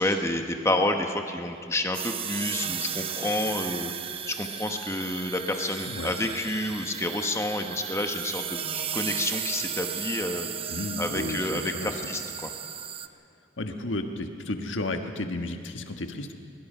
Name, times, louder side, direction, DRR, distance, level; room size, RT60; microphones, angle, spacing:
voice 1, 0.0-3.9 4.3-12.5, left 1 dB, 15° left, 5 dB, 1.1 m, -29 dB
sound 1, 1.9-13.1, right 8 dB, 30° right, 0.6 m, -35 dB
voice 2, 10.7-12.1 13.6-16.3, left 2 dB, 80° left, 5 dB, 1.5 m, -33 dB
22.0 x 21.0 x 5.6 m, 2.4 s
head